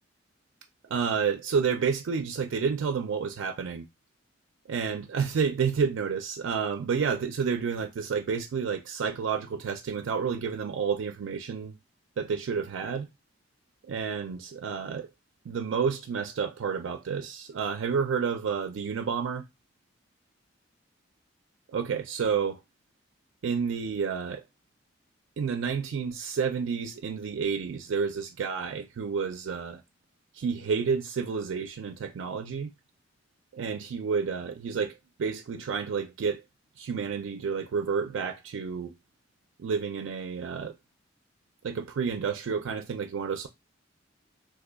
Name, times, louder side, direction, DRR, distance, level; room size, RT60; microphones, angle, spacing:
voice 1, 0.9-3.9 4.7-11.8 12.2-13.1 13.8-15.1 15.4-19.4 21.7-22.6 23.4-24.4 25.4-29.8 30.3-32.7 33.5-36.4 36.8-38.9 39.6-40.8 41.6-43.5, right 6 dB, 80° right, 0.4 m, -30 dB
2.6 x 2.2 x 3.8 m
head